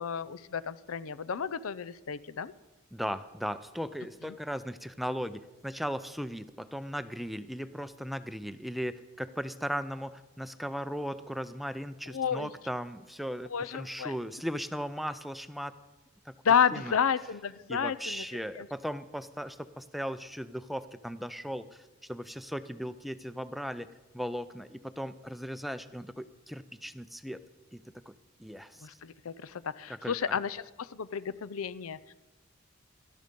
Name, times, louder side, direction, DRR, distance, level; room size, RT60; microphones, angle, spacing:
voice 1, 0.0-2.5 12.1-12.5 13.5-14.1 16.4-18.2 18.6-18.7 28.8-32.0, left 7 dB, 85° left, 16 dB, 0.6 m, -31 dB
voice 2, 2.9-15.7 16.3-16.4 16.7-16.9 17.7-23.9 24.1-27.4 27.7-27.8 28.1-28.2 28.4-29.0 29.9-30.4, equal, ahead, 12 dB, 0.4 m, -37 dB
18.0 x 13.0 x 5.3 m, 1.1 s
head